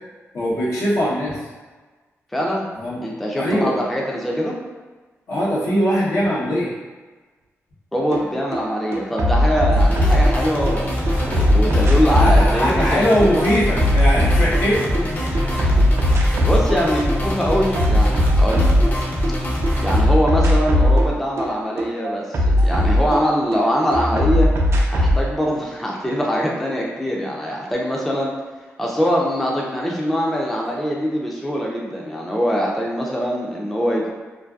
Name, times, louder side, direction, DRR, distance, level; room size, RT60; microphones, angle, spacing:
voice 1, 0.3-1.4 2.7-3.0 3.4-3.8 5.3-6.7 12.1-15.5, equal, 75° left, -7 dB, 0.9 m, -21 dB
voice 2, 2.3-2.7 3.0-4.6 7.9-10.9 11.3-13.0 15.3-15.8 16.1-18.7 19.8-24.5 24.9-28.3 28.8-34.1, equal, 5° left, -3 dB, 0.4 m, -23 dB
sound 1, 8.1-8.2 8.5-10.7 11.1-15.0 15.3-16.8 17.1-19.3 19.6-23.6 23.9-25.2, left 1 dB, 65° right, 0.4 m, -18 dB
sound 2, 9.7-20.0, left 1 dB, 35° left, 0.7 m, -23 dB
2.6 x 2.3 x 2.3 m, 1.3 s
cardioid pair, 85°, 5 cm